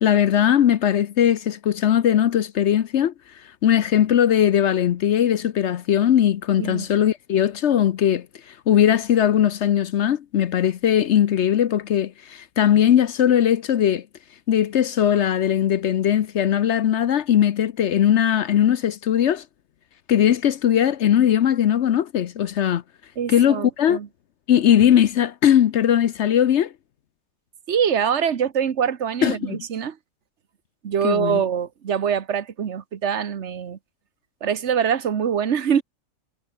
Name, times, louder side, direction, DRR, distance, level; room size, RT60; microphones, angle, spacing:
voice 1, 0.0-3.1 3.6-8.3 8.7-14.0 14.5-19.4 20.1-22.8 23.3-24.0 24.5-26.7 29.2-29.6 31.0-31.4, left 10 dB, 60° left, 0.9 m, -19 dB
voice 2, 23.2-24.1 27.7-30.0 30.8-33.8 34.4-35.8, right 8 dB, 55° right, 1.4 m, -24 dB
omnidirectional pair, 1.5 m